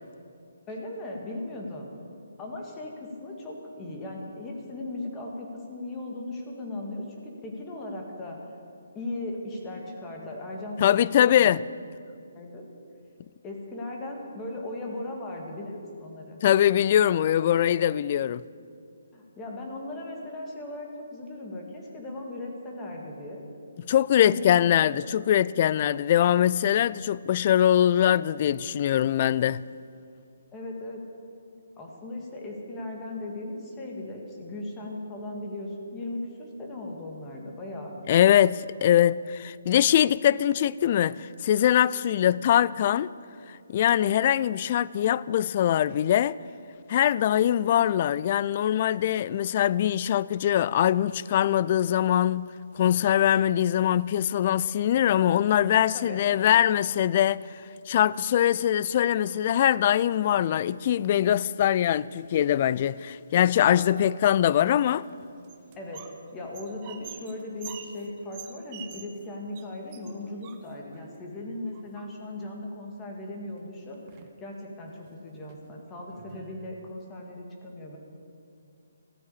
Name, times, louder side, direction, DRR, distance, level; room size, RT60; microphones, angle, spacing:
voice 1, 0.7-1.9 2.4-8.4 9.0-11.5 12.3-12.7 13.4-16.4 19.1-23.4 24.2-24.9 30.5-31.0 31.8-38.0 55.9-56.2 63.7-63.9 65.8-66.0 66.3-74.0 74.4-78.0, left 2 dB, 15° left, 2.0 m, -37 dB
voice 2, 10.8-11.6 16.4-18.4 23.9-29.6 38.1-43.1 43.7-46.4 46.9-52.5 52.8-57.4 57.9-65.0, left 11 dB, 40° left, 0.3 m, -22 dB
sound 1, 65.0-66.2 66.5-69.3 69.5-69.7 69.9-71.0 71.7-72.4 73.5-73.6 73.9-74.4 74.9-75.1 75.5-75.6 76.1-76.9, right 9 dB, 30° right, 1.0 m, -46 dB
14.5 x 9.2 x 8.6 m
hypercardioid pair, 150°, 0 cm